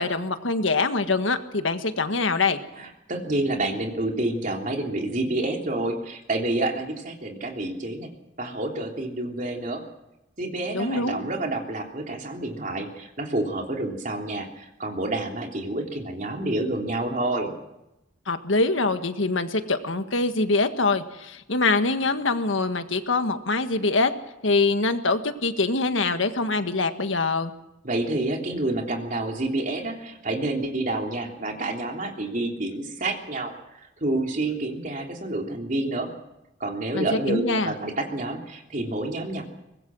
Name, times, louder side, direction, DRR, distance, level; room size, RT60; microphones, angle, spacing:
voice 1, 0.0-2.6 10.7-11.2 18.3-24.1 24.4-27.5 36.9-37.7, left 3 dB, 80° left, 8 dB, 1.6 m, -24 dB
voice 2, 2.8-8.1 8.4-9.8 10.4-17.5 27.8-36.1 36.6-39.4, right 2 dB, 40° right, 2 dB, 3.3 m, -28 dB
24.0 x 20.0 x 6.3 m, 0.91 s
head